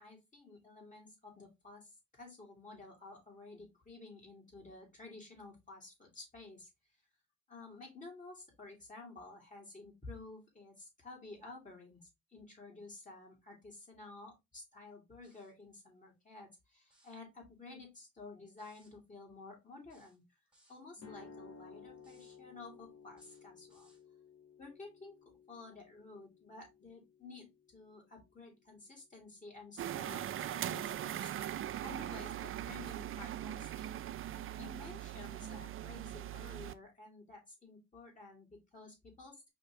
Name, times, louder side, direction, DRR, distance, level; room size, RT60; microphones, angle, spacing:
voice 1, 0.0-6.7 7.5-20.2 20.7-23.9 24.6-30.3 30.5-33.9 34.6-39.5, left 3 dB, 25° left, -1 dB, 2.7 m, -52 dB
sound 1, 15.2-15.6 16.8-17.2 18.6-19.0 19.9-20.8 22.0-22.4 23.1-24.0, right 1 dB, 5° right, 1.7 m, -69 dB
sound 2, 21.0-29.0, left 5 dB, 55° left, 1.6 m, -57 dB
sound 3, 29.8-36.7, right 11 dB, 45° right, 0.4 m, -40 dB
4.9 x 3.0 x 3.1 m, 0.22 s
cardioid pair, 90°, 30 cm